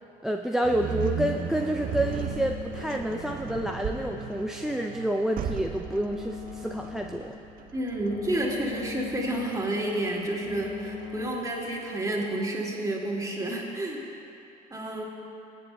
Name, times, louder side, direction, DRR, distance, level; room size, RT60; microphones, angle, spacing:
voice 1, 0.2-7.4, right 1 dB, ahead, 3 dB, 0.4 m, -29 dB
sound 1, 0.6-11.8, right 8 dB, 50° right, 0.6 m, -37 dB
sound 2, 1.2-11.3, left 6 dB, 75° left, 0.8 m, -42 dB
voice 2, 7.7-14.0 14.7-15.0, right 1 dB, 20° right, -3 dB, 2.3 m, -30 dB
22.0 x 8.3 x 2.3 m, 2.8 s
hypercardioid pair, 65°, 19 cm